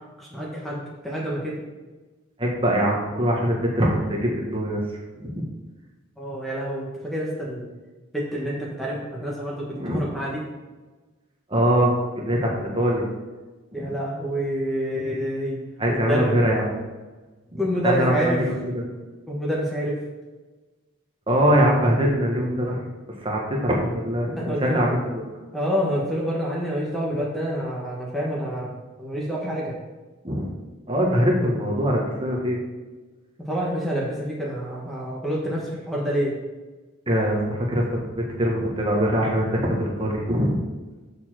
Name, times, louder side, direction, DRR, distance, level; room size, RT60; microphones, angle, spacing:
voice 1, 0.2-1.6 6.2-7.7 8.1-10.4 13.7-15.6 15.9-16.4 17.6-18.4 19.3-20.0 24.3-25.0 25.5-28.7 29.0-29.8 33.5-36.4, equal, ahead, -5 dB, 1.2 m, -27 dB
voice 2, 2.4-4.8 5.2-5.5 9.7-10.0 11.5-13.0 13.7-13.9 15.8-16.8 17.5-18.3 18.7-18.8 21.3-22.8 23.2-25.2 30.2-30.5 30.9-32.6 37.1-40.6, equal, 25° right, -2 dB, 1.4 m, -23 dB
6.9 x 6.7 x 4.5 m, 1.2 s
head